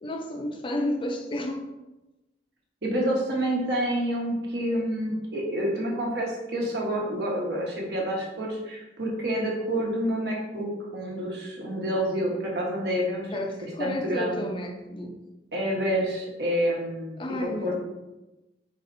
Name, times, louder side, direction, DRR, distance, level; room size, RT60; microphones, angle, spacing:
voice 1, 0.0-1.6 13.3-15.2 17.2-17.8, left 1 dB, 30° left, 4 dB, 0.4 m, -31 dB
voice 2, 2.8-13.3 13.8-14.4 15.5-17.2 17.6-17.8, equal, 70° right, -2 dB, 1.1 m, -28 dB
4.3 x 4.1 x 2.6 m, 1.0 s
head